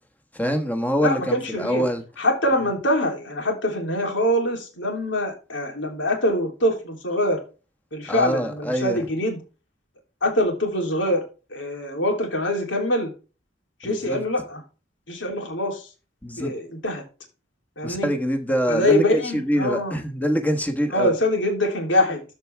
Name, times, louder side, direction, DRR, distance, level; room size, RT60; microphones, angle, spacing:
voice 1, 0.3-2.0 8.1-9.1 13.8-14.2 16.2-16.5 17.8-21.1, equal, 10° left, 1.3 m, -24 dB
voice 2, 1.0-1.8 2.2-7.4 7.9-9.4 10.2-11.2 11.5-13.1 13.8-14.6 15.1-15.9 16.4-17.0 17.8-18.1 18.7-20.0 20.9-22.2, left 1 dB, 80° left, 3.1 m, -24 dB
13.0 x 4.6 x 3.4 m
head